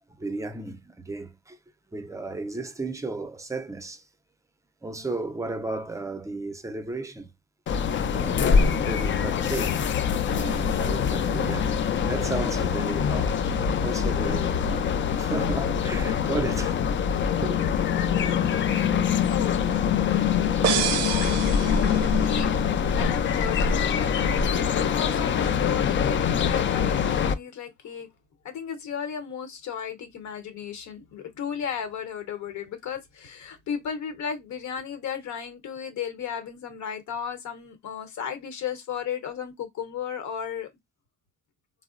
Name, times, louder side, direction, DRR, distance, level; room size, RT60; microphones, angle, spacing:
voice 1, 0.2-1.6 1.9-4.1 4.8-7.3 8.0-9.9 10.3-14.9 15.2-16.8 17.4-18.4, right 2 dB, 10° right, 0.5 m, -34 dB
sound 1, 7.7-27.3, left 7 dB, 40° left, 0.4 m, -24 dB
voice 2, 20.0-22.6 22.9-28.1 28.4-40.7, left 8 dB, 70° left, 1.0 m, -35 dB
sound 2, 20.6-22.4, right 10 dB, 60° right, 0.5 m, -28 dB
3.6 x 2.0 x 2.4 m
cardioid pair, 90°, 30 cm